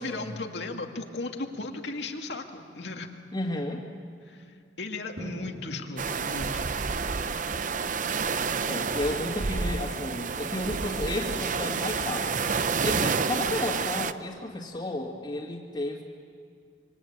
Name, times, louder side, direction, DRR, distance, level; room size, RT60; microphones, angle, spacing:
voice 1, 0.0-3.1 4.3-6.7, left 2 dB, 80° left, 3 dB, 2.3 m, -36 dB
voice 2, 3.3-3.8 8.7-12.4 12.8-16.0, left 1 dB, 30° left, -5 dB, 2.2 m, -32 dB
Drum, 5.2-7.1, right 1 dB, 90° right, 4.7 m, -44 dB
sound 1, 6.0-14.1, right 5 dB, 50° right, 0.7 m, -29 dB
26.5 x 25.5 x 8.8 m, 2.2 s
head